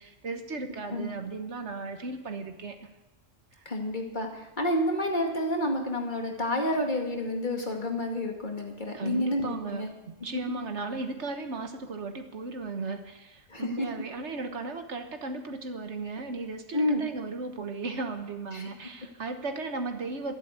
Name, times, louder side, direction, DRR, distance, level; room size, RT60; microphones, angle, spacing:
voice 1, 0.0-2.9 3.6-3.7 8.9-20.4, right 3 dB, 65° right, 6 dB, 1.5 m, -36 dB
voice 2, 3.7-9.9 13.5-13.9 16.7-17.0 18.5-18.7, left 1 dB, 40° left, 1 dB, 2.2 m, -29 dB
12.5 x 11.0 x 8.1 m, 1.0 s
omnidirectional pair, 1.3 m